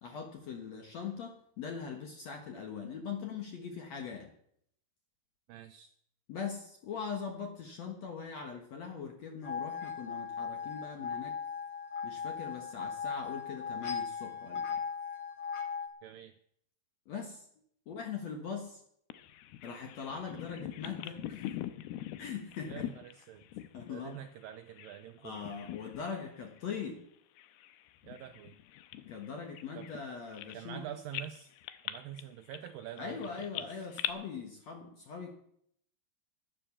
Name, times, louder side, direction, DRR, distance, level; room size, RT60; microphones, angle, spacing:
voice 1, 0.0-4.3 6.3-11.3 12.0-14.8 17.1-17.5 17.9-18.8 19.6-21.5 22.2-22.9 23.7-24.2 25.2-27.0 29.1-30.8 33.0-35.3, left 6 dB, 60° left, 3 dB, 1.8 m, -41 dB
voice 2, 5.5-5.9 16.0-16.3 22.7-23.5 23.9-25.6 28.0-28.6 29.8-29.9 30.5-31.5 31.8-33.9, right 11 dB, 85° right, 8 dB, 2.0 m, -46 dB
sound 1, 9.4-15.9, left 6 dB, 45° left, 2.5 m, -38 dB
Bird vocalization bird call bird song, 19.1-25.1 25.3-26.3 26.6-26.8 27.4-30.8 31.1-34.1, left 13 dB, 80° left, 2.6 m, -43 dB
12.0 x 11.0 x 7.2 m, 0.69 s
omnidirectional pair, 4.7 m